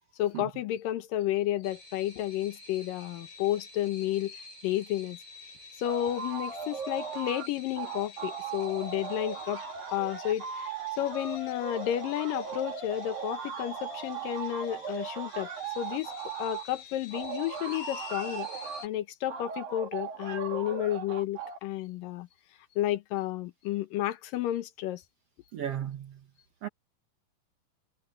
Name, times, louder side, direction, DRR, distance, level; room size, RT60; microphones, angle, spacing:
voice 1, 0.2-4.4 4.6-5.2 5.8-9.6 9.9-15.5 15.8-16.1 16.4-18.5 18.8-22.3 22.8-25.0, left 13 dB, 80° left, 2.7 m, -31 dB
sound 1, 1.6-18.9, left 4 dB, 60° left, 5.5 m, -49 dB
sound 2, 5.8-7.5 7.7-16.7 17.1-18.9 19.3-21.6, right 6 dB, 85° right, 5.0 m, -38 dB
voice 2, 25.5-26.2 26.6-26.7, right 10 dB, 65° right, 1.6 m, -35 dB
omnidirectional pair, 4.0 m